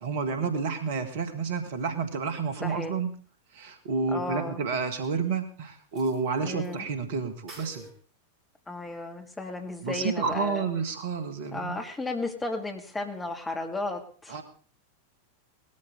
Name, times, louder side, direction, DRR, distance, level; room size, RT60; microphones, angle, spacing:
voice 1, 0.0-3.1 3.5-7.9 9.8-11.8 14.3-14.4, right 5 dB, 55° right, 8 dB, 1.9 m, -30 dB
voice 2, 2.6-2.9 4.1-4.6 6.4-6.9 8.7-10.7 11.5-14.4, left 2 dB, 10° left, 3 dB, 2.5 m, -34 dB
sound 1, 5.0-5.1 5.9-6.8 7.0-7.1 7.5-7.9, right 2 dB, 30° right, 7.3 m, -48 dB
19.5 x 13.5 x 3.9 m, 0.42 s
figure-of-eight pair, 90°, 0 cm